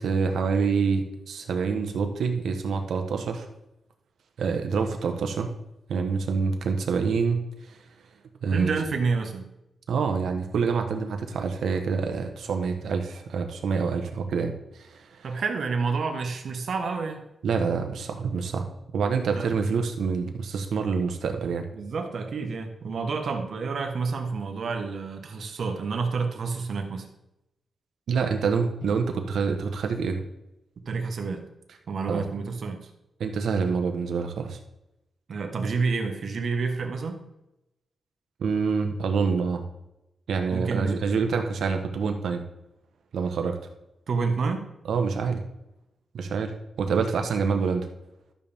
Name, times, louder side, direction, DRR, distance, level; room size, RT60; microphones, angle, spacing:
voice 1, 0.0-3.5 4.4-5.5 5.9-7.4 7.7-7.8 8.4-8.7 9.9-15.3 17.4-18.7 18.9-21.7 28.1-30.2 32.1-32.2 33.2-34.6 38.4-39.6 40.3-42.4 43.1-43.6 44.9-45.4 46.1-47.9, right 5 dB, 85° right, 5 dB, 1.2 m, -26 dB
voice 2, 8.5-9.5 15.2-17.2 19.3-19.5 21.7-27.1 28.8-28.9 30.9-31.4 31.9-32.8 35.3-37.2 40.5-41.0 44.1-44.6, right 4 dB, 65° right, 5 dB, 1.4 m, -29 dB
12.5 x 7.1 x 3.6 m, 0.90 s
cardioid pair, 105°, 0 cm